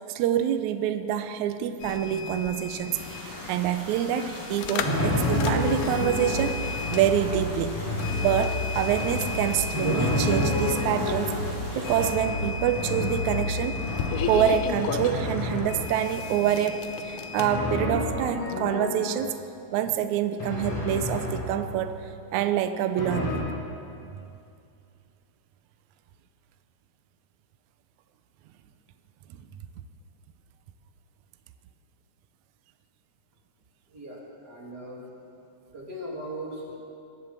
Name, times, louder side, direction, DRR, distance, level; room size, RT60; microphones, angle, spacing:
voice 1, 0.1-7.8 8.2-11.4 11.8-14.0 14.3-19.4 19.7-23.5, right 10 dB, 75° right, 9 dB, 1.9 m, -26 dB
sound 1, 1.8-17.5, left 6 dB, 85° left, 2.4 m, -36 dB
sound 2, 2.9-12.1, equal, 5° right, 3.1 m, -43 dB
Drum, 4.8-16.2 17.4-19.4 20.4-21.9 23.0-23.4, left 1 dB, 60° left, 5.1 m, -29 dB
voice 2, 34.4-35.0 35.7-36.8, right 1 dB, 35° right, -4 dB, 2.9 m, -38 dB
21.0 x 7.9 x 7.3 m, 2.6 s
omnidirectional pair, 3.5 m